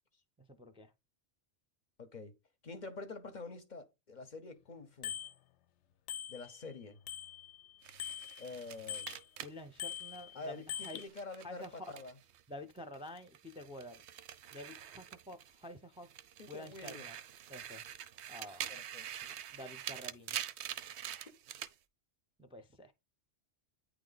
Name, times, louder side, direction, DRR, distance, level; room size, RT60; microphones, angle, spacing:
voice 1, 0.4-0.9 9.4-11.0 11.4-11.9 12.5-14.0 14.5-16.1 16.5-17.2 17.5-17.8 18.3-18.7 19.5-20.4 22.4-22.9, left 1 dB, 5° right, 0.5 m, -49 dB
voice 2, 2.0-2.3 2.6-5.1 6.3-7.0 8.4-9.2 10.3-12.1 16.4-17.1 18.7-19.3, left 3 dB, 45° left, 0.8 m, -47 dB
Bicycle bell, 5.0-5.3 6.1-6.7 7.1-9.2 9.8-11.1, left 10 dB, 85° left, 0.9 m, -43 dB
sound 1, 7.8-12.4 12.7-15.7 16.0-21.7, right 10 dB, 80° right, 0.9 m, -45 dB
9.1 x 3.2 x 3.9 m
omnidirectional pair, 1.1 m